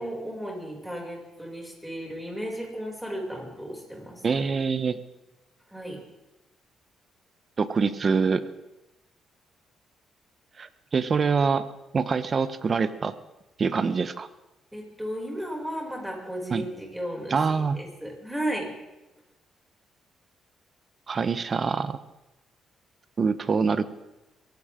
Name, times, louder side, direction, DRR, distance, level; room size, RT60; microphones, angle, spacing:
voice 1, 0.0-4.5 5.7-6.0 7.8-8.0 14.7-18.7, right 1 dB, 5° right, -1 dB, 6.5 m, -35 dB
voice 2, 4.2-5.0 7.6-8.5 10.6-11.7 11.9-13.1 13.6-14.3 16.5-16.6 17.3-17.8 21.1-22.0 23.2-23.8, right 5 dB, 40° right, 13 dB, 1.0 m, -25 dB
23.5 x 16.5 x 3.8 m, 0.98 s
cardioid pair, 90°, 0 cm